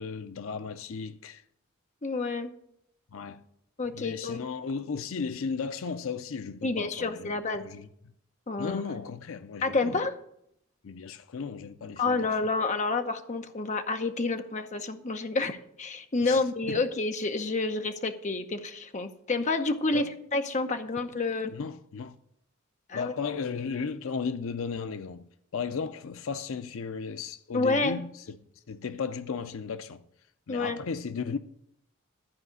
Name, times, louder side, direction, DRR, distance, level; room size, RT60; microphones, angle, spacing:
voice 1, 0.0-1.4 3.1-3.4 3.9-7.4 7.6-7.9 8.6-10.0 10.8-12.3 16.2-16.8 19.9-20.1 21.5-22.2 22.9-28.4 28.7-30.0 30.5-31.4, left 5 dB, 70° left, 0.5 m, -35 dB
voice 2, 2.0-2.5 3.8-4.5 6.6-7.7 8.5-8.8 9.6-10.1 12.0-20.0 20.3-21.5 22.9-23.1 27.5-28.0 30.5-30.8, left 3 dB, 35° left, 0.7 m, -29 dB
12.5 x 4.9 x 8.1 m
head